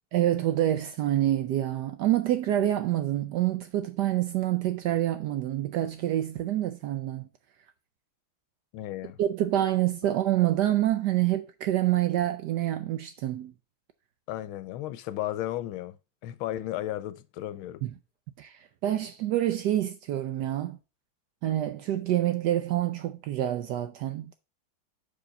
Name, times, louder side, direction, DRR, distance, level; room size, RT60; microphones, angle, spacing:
voice 1, 0.1-7.3 9.2-13.5 17.8-17.9 18.4-20.8 21.4-24.3, right 13 dB, 75° right, 1.0 m, -27 dB
voice 2, 8.7-9.2 14.3-16.0 16.2-17.8, left 13 dB, 85° left, 1.4 m, -34 dB
5.1 x 4.7 x 5.3 m
omnidirectional pair, 2.2 m